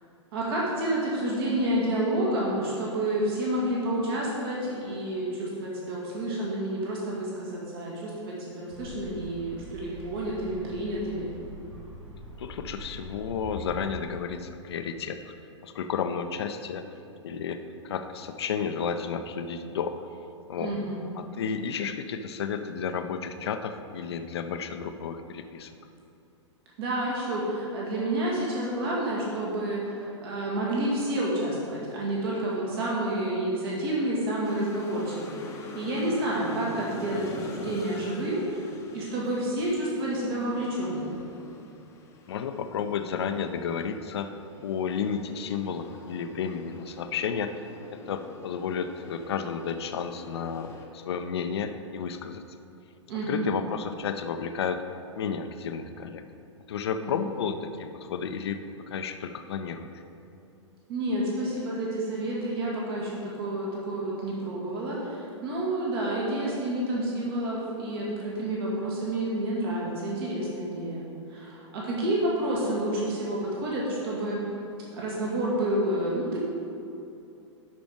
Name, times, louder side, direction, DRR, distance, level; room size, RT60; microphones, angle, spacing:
voice 1, 0.3-11.3 20.6-21.0 26.8-41.2 53.1-53.5 57.0-57.3 60.9-74.4 74.9-76.4, right 1 dB, 50° right, -5 dB, 2.2 m, -29 dB
sound 1, 8.7-14.0, left 1 dB, 75° right, 1.7 m, -43 dB
voice 2, 12.4-15.3 15.6-16.8 17.2-20.0 20.5-20.8 21.2-25.7 42.3-47.6 47.9-52.4 53.3-54.8 55.2-56.2 56.7-58.6 58.9-60.0, left 6 dB, 55° left, 8 dB, 0.6 m, -32 dB
sound 2, 34.4-50.9, left 2 dB, 20° left, 0.9 m, -45 dB
12.0 x 5.1 x 5.0 m, 2.7 s
figure-of-eight pair, 105°, 16 cm